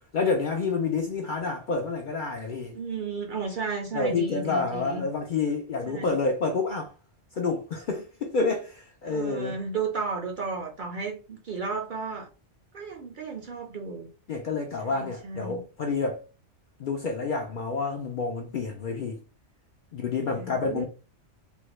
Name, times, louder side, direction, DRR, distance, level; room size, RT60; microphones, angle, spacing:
voice 1, 0.1-2.8 3.9-6.9 7.3-9.6 14.3-16.2 16.8-19.2 19.9-20.8, left 4 dB, 60° left, 0.5 m, -28 dB
voice 2, 2.7-5.1 5.9-6.2 9.0-12.3 12.7-14.1 14.8-15.6 20.2-20.8, right 4 dB, 55° right, 0.6 m, -34 dB
3.4 x 2.2 x 3.1 m
omnidirectional pair, 1.2 m